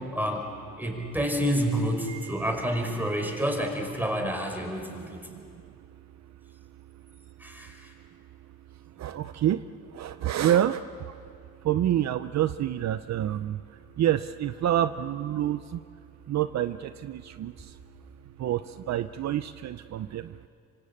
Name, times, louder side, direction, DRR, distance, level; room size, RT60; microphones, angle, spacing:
voice 1, 0.1-0.4 0.8-5.2 7.4-7.7, equal, 5° right, 2 dB, 5.5 m, -28 dB
voice 2, 2.1-3.4 4.9-5.4 9.0-9.6 9.9-11.2 11.6-13.6 14.0-15.8 16.3-17.8 18.4-20.4, right 11 dB, 60° right, 11 dB, 0.7 m, -28 dB
25.5 x 25.5 x 8.6 m, 2.4 s
cardioid pair, 90°, 30 cm